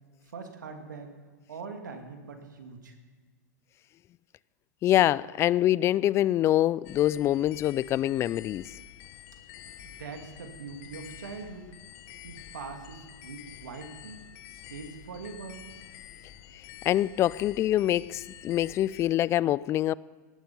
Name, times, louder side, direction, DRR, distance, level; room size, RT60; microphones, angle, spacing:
voice 1, 0.3-1.1 1.5-3.0 9.8-11.7 12.2-14.2 14.5-15.7, right 4 dB, 85° right, 2.4 m, -42 dB
voice 2, 4.8-8.6 16.9-19.9, left 13 dB, 30° left, 0.3 m, -25 dB
sound 1, 6.8-19.0, left 10 dB, 50° left, 1.2 m, -48 dB
18.0 x 11.5 x 5.4 m
hypercardioid pair, 115°, 10 cm